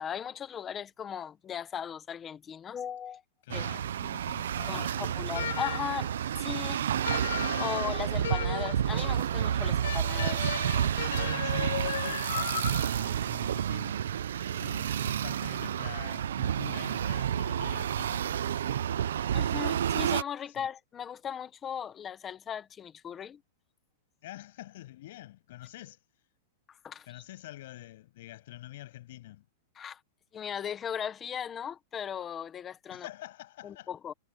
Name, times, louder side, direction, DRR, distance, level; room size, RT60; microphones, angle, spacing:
voice 1, 0.0-3.2 3.5-3.6 4.7-6.1 6.4-6.9 7.6-10.4 11.0-11.1 19.3-23.4 26.7-27.2 29.7-30.0 30.3-33.1 33.6-34.1, left 8 dB, 15° left, 1.0 m, -37 dB
voice 2, 3.4-5.2 7.6-7.8 9.6-9.8 11.1-12.5 12.9-14.3 14.5-18.4 20.5-20.7 24.2-26.0 27.1-29.4 32.9-33.9, left 15 dB, 50° left, 7.9 m, -47 dB
sound 1, 3.5-20.2, right 9 dB, 90° right, 0.7 m, -30 dB
sound 2, 5.3-6.0 7.0-8.9 9.8-13.0, left 10 dB, 90° left, 2.7 m, -36 dB
supercardioid pair, 175°, 0 cm